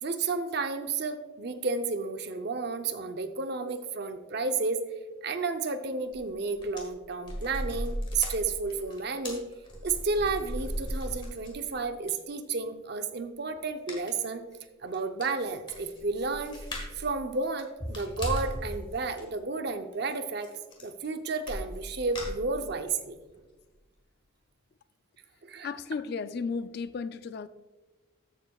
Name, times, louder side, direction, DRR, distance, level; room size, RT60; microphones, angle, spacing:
voice 1, 0.0-4.8 5.2-9.4 9.8-14.4 14.8-16.6 16.9-20.5 20.8-23.2 25.4-25.7, right 4 dB, 50° right, 8 dB, 0.6 m, -32 dB
sound 1, 6.1-6.3 6.6-11.7 12.1-12.2 13.9-14.2 14.5-14.6 14.9-15.0 15.2-17.1 17.4-18.6 19.0-19.2 20.4-20.5 20.7-21.1 21.5-22.9 23.3-23.4 23.8-23.9, equal, 25° left, 1.5 m, -36 dB
voice 2, 25.6-27.5, left 5 dB, 50° left, 13 dB, 0.3 m, -34 dB
13.5 x 7.2 x 2.3 m, 1.2 s
head